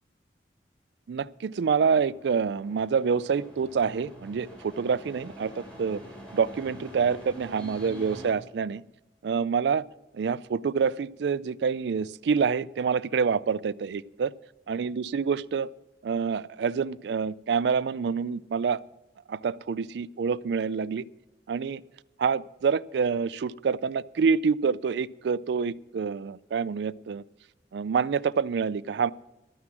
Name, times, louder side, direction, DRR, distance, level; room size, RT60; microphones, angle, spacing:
voice 1, 1.1-6.0 6.3-8.8 9.2-9.8 10.1-14.3 14.7-15.7 16.0-18.8 19.3-21.0 21.5-21.8 22.2-27.2 27.7-29.1, right 6 dB, 75° right, 20 dB, 0.4 m, -27 dB
sound 1, 1.7-8.3, equal, 5° left, 4.1 m, -46 dB
13.0 x 9.6 x 6.0 m, 0.97 s
head